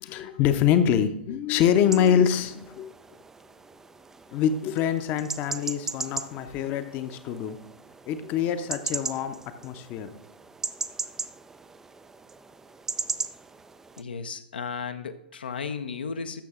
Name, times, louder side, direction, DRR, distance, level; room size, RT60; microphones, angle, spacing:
voice 1, 0.0-2.9 4.3-7.6 8.1-9.4 9.6-10.1, left 9 dB, 30° left, 9 dB, 0.7 m, -25 dB
sound 1, 1.6-14.0, right 4 dB, 10° right, 0.3 m, -38 dB
voice 2, 14.0-16.4, left 5 dB, 70° left, 8 dB, 0.7 m, -34 dB
13.5 x 6.3 x 3.6 m, 0.78 s
figure-of-eight pair, 110°, 6 cm